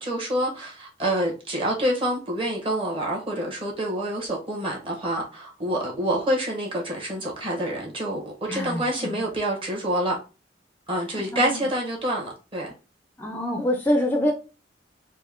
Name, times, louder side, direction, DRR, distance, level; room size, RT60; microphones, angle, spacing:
voice 1, 0.0-10.2 10.9-12.7, right 1 dB, 30° right, 1.2 m, -27 dB
voice 2, 8.5-9.2 11.1-11.7 13.2-14.3, left 1 dB, 10° left, 0.4 m, -26 dB
4.2 x 2.1 x 3.6 m
head